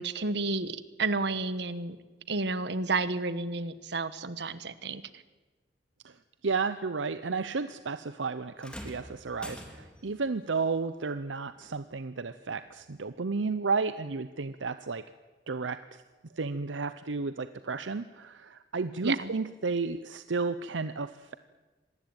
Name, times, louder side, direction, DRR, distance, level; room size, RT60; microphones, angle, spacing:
voice 1, 0.0-2.0 2.3-5.0 19.0-19.3, right 3 dB, 65° right, 14 dB, 1.4 m, -31 dB
voice 2, 6.4-15.0 15.5-16.0 16.3-21.3, right 4 dB, 80° right, 12 dB, 0.8 m, -32 dB
sound 1, 8.6-10.1 11.6-11.8 12.6-12.7, equal, 5° left, 3.1 m, -45 dB
26.0 x 19.5 x 8.9 m, 1.2 s
head